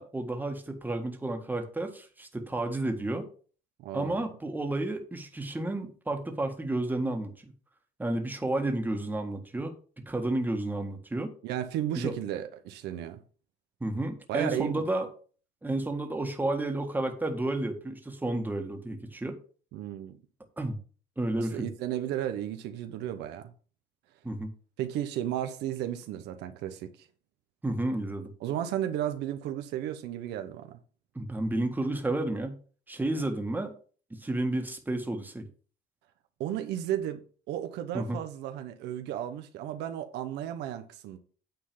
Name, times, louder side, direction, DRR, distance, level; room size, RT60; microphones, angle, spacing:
voice 1, 0.0-3.2 3.9-7.5 8.0-11.3 12.0-12.1 13.8-15.1 15.6-19.4 20.6-20.8 21.2-21.7 24.2-24.5 27.6-28.3 31.2-32.6 32.9-33.7 34.1-35.5 37.9-38.2, right 2 dB, 10° right, 1.7 m, -31 dB
voice 2, 3.8-4.2 11.4-13.2 14.3-14.8 19.7-20.2 21.4-23.5 24.8-27.1 28.4-30.8 36.4-37.2 37.5-41.2, right 11 dB, 85° right, 1.0 m, -34 dB
9.3 x 3.9 x 7.1 m
cardioid pair, 110°, 17 cm